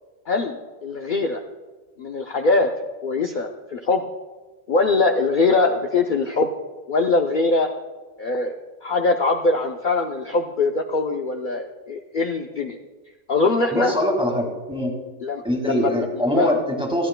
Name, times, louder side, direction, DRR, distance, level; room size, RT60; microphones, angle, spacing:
voice 1, 0.3-1.4 2.0-2.7 3.0-4.0 4.7-6.5 6.9-7.7 8.2-12.8 13.3-13.9 15.2-16.5, left 3 dB, 50° left, 2 dB, 0.8 m, -22 dB
voice 2, 13.7-14.9 15.4-17.1, equal, 5° right, 0 dB, 2.0 m, -23 dB
29.0 x 10.0 x 2.2 m, 1.3 s
omnidirectional pair, 1.2 m